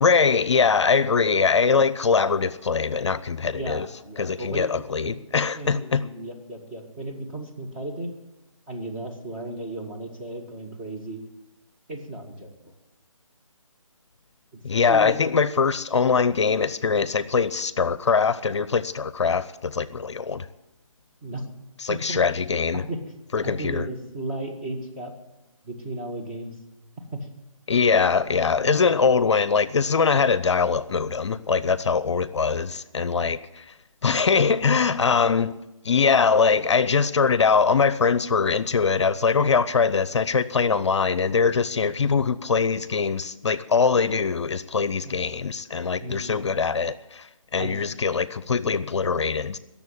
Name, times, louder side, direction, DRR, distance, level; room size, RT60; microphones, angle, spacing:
voice 1, 0.0-3.9 4.2-6.0 14.6-20.5 21.8-22.8 23.3-23.9 27.7-33.7 34.0-35.6 35.8-49.6, left 5 dB, 55° left, 0.6 m, -22 dB
voice 2, 3.4-5.2 5.5-8.1 8.7-11.2 11.9-12.7 14.9-15.2 21.2-21.4 21.9-22.2 22.9-23.0 23.4-25.1 25.6-26.6 27.1-27.3 32.5-32.7 45.0-45.2 46.0-46.5 47.6-47.7 49.2-49.3, right 1 dB, 20° right, 2.0 m, -35 dB
18.0 x 7.1 x 8.3 m
figure-of-eight pair, 155°, 17 cm